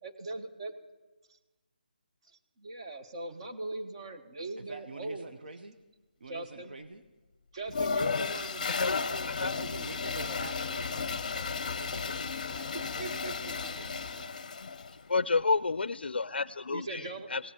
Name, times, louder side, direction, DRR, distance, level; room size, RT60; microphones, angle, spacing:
voice 1, 0.0-0.7 1.3-1.4 2.2-5.3 6.3-6.7 7.5-10.4 11.9-12.0 12.7-13.3 16.7-17.3, right 2 dB, 35° right, 6 dB, 1.1 m, -41 dB
voice 2, 4.6-5.8 6.2-7.0 9.4-14.4, right 3 dB, 65° right, 8 dB, 0.9 m, -47 dB
Toilet flush, 7.7-14.9, left 5 dB, 45° left, 0.7 m, -34 dB
voice 3, 8.7-9.5 15.1-17.4, left 4 dB, 85° left, 18 dB, 0.4 m, -30 dB
16.5 x 8.4 x 8.8 m, 1.2 s
hypercardioid pair, 165°, 5 cm